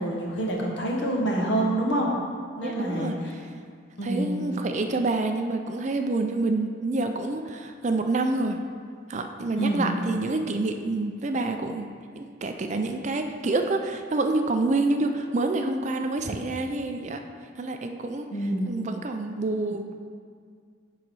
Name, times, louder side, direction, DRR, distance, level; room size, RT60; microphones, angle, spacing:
voice 1, 0.0-2.1 2.6-3.1 4.0-4.4 9.5-9.9 18.3-18.7, right 1 dB, 70° left, -1 dB, 1.3 m, -26 dB
voice 2, 2.6-3.2 4.0-8.6 9.1-11.9 12.1-17.2 17.6-18.3 18.7-20.0, right 2 dB, 35° right, 6 dB, 0.4 m, -27 dB
10.5 x 3.9 x 4.7 m, 2.1 s
head